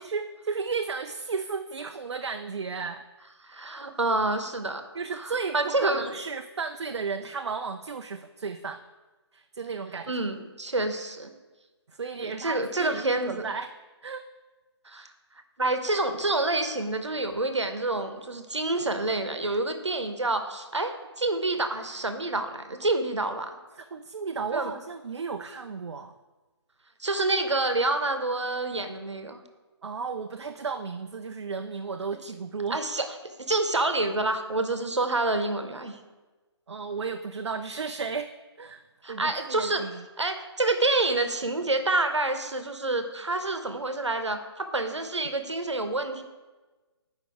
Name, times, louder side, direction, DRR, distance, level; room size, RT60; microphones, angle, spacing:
voice 1, 0.0-3.0 4.9-8.8 9.3-10.1 11.9-13.7 14.0-14.3 23.8-26.1 29.8-32.8 36.7-38.3 38.6-38.8 39.1-40.1, right 5 dB, 75° right, 7 dB, 0.5 m, -34 dB
voice 2, 3.4-4.8 5.1-6.0 10.1-11.3 12.2-13.5 14.8-15.1 15.6-23.6 24.5-24.7 27.0-29.4 32.7-33.1 33.4-36.0 39.0-39.8 40.2-46.2, right 2 dB, 90° right, 8 dB, 1.0 m, -28 dB
9.1 x 5.3 x 4.8 m, 1.2 s
figure-of-eight pair, 140°, 15 cm